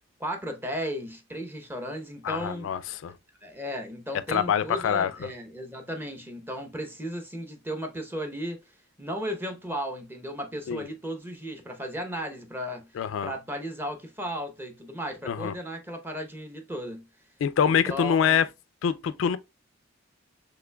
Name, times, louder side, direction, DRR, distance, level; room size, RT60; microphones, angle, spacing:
voice 1, 0.2-2.7 3.4-8.6 9.0-12.9 13.2-17.1 17.6-18.4, equal, 10° right, 0.8 m, -35 dB
voice 2, 2.2-3.1 4.3-5.3 10.7-10.9 13.0-13.3 15.3-15.5 17.4-18.5 18.8-19.4, left 7 dB, 80° left, 0.3 m, -25 dB
5.9 x 3.2 x 2.2 m
head